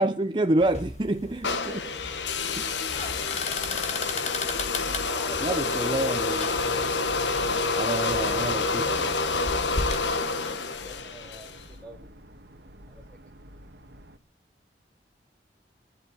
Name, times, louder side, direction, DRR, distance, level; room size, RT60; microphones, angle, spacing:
voice 1, 0.0-1.5 2.5-2.6 5.4-6.5 7.7-9.2, right 1 dB, 25° right, 8 dB, 0.6 m, -27 dB
sound 1, 0.6-10.1, left 3 dB, 40° left, 1.5 m, -37 dB
sound 2, 1.4-11.6, left 4 dB, 80° left, 1.3 m, -28 dB
voice 2, 1.5-2.0 2.5-4.2 4.7-6.2 9.9-12.3 12.9-13.2, right 1 dB, 5° left, 1 dB, 3.4 m, -48 dB
sound 3, 2.1-14.2, equal, 75° right, 1.8 m, -50 dB
22.5 x 11.0 x 4.1 m, 0.41 s
head